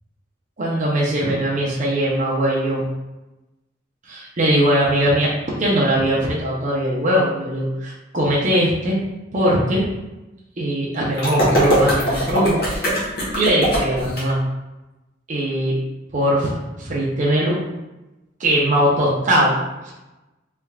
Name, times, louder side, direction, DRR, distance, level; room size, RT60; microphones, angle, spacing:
voice 1, 0.6-2.8 4.1-5.3 5.6-9.0 9.3-9.8 10.6-13.1 13.4-14.4 15.3-15.8 16.1-17.6 18.4-19.5 19.8-19.9, equal, 40° right, -5 dB, 0.6 m, -20 dB
sound 1, 11.2-14.2, right 1 dB, 50° left, 1.2 m, -21 dB
3.3 x 3.3 x 2.3 m, 1.0 s
head